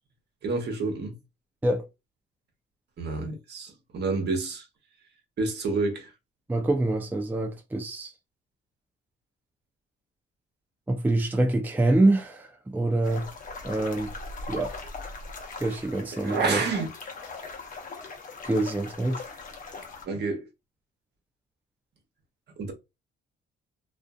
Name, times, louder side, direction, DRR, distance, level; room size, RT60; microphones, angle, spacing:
voice 1, 0.4-1.2 3.0-4.7 5.4-6.1 16.2-16.9 20.0-20.5 22.6-22.7, right 3 dB, 60° right, 1.0 m, -29 dB
voice 2, 6.5-8.1 10.9-13.3 13.6-14.1 14.5-14.8 15.6-16.6 18.4-19.2, right 2 dB, 10° right, 0.5 m, -25 dB
sound 1, 13.0-20.1, left 3 dB, 45° left, 0.8 m, -40 dB
2.5 x 2.4 x 2.3 m
cardioid pair, 90°, 20 cm